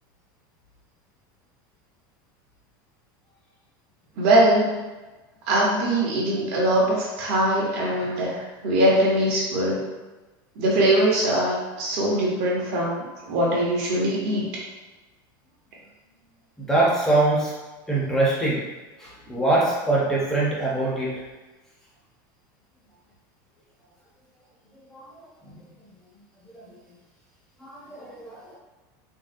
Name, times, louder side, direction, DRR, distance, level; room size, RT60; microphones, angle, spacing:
voice 1, 4.2-4.8 5.5-9.9 10.6-14.5, right 1 dB, 50° right, -4 dB, 0.9 m, -22 dB
voice 2, 16.6-17.5 17.9-18.6 19.0-21.1 24.9-25.6 26.5-26.7 27.6-28.6, right 2 dB, 5° left, -6 dB, 0.5 m, -24 dB
3.6 x 2.1 x 2.5 m, 1.2 s
supercardioid pair, 180°, 11 cm